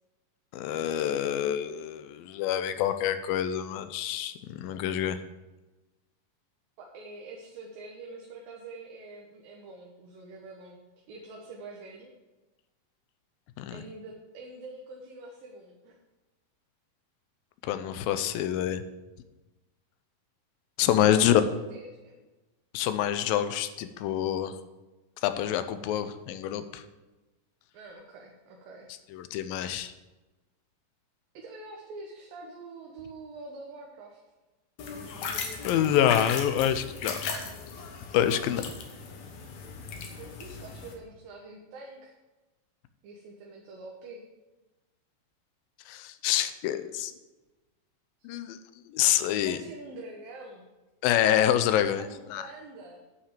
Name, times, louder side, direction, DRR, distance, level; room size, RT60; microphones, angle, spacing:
voice 1, 0.5-5.2 13.6-13.8 17.6-18.8 20.8-21.4 22.7-24.6 25.2-26.8 29.1-29.9 35.6-37.3 38.1-38.6 45.9-47.1 48.2-48.6 48.9-49.6 51.0-52.0 52.3-52.4, left 11 dB, 90° left, 11 dB, 2.4 m, -26 dB
voice 2, 6.8-10.8 11.1-12.1 13.7-15.9 21.0-22.2 27.7-28.9 31.3-34.2 40.2-42.1 43.0-44.2 48.2-48.3 49.4-50.7 52.0-53.0, right 3 dB, 80° right, -1 dB, 2.9 m, -45 dB
sound 1, 34.8-40.9, left 5 dB, 65° left, 2.2 m, -37 dB
9.9 x 5.8 x 7.5 m, 1.1 s
omnidirectional pair, 4.1 m